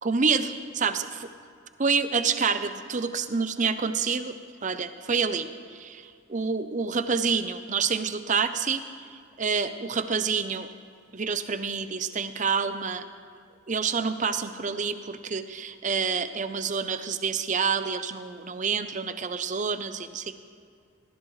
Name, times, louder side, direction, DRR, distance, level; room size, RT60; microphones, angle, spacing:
voice 1, 0.0-1.3 1.8-4.3 4.6-8.8 9.1-10.7 11.1-13.0 13.7-20.3, right 5 dB, 35° right, 11 dB, 0.6 m, -28 dB
19.0 x 15.5 x 3.2 m, 2.2 s
head